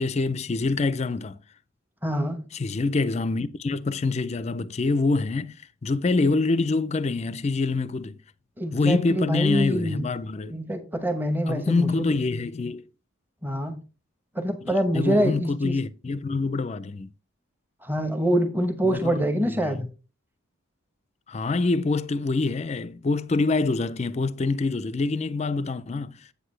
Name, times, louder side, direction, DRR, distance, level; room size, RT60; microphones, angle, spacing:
voice 1, 0.0-1.4 2.6-5.6 5.8-8.2 8.7-10.6 11.5-12.9 14.9-17.1 18.8-19.2 19.5-19.7 21.3-26.3, left 3 dB, 30° left, 0.4 m, -25 dB
voice 2, 2.0-2.5 8.6-10.0 10.5-12.2 13.4-13.8 14.3-15.8 17.8-19.9, equal, 10° right, 0.9 m, -25 dB
8.3 x 7.9 x 3.2 m
head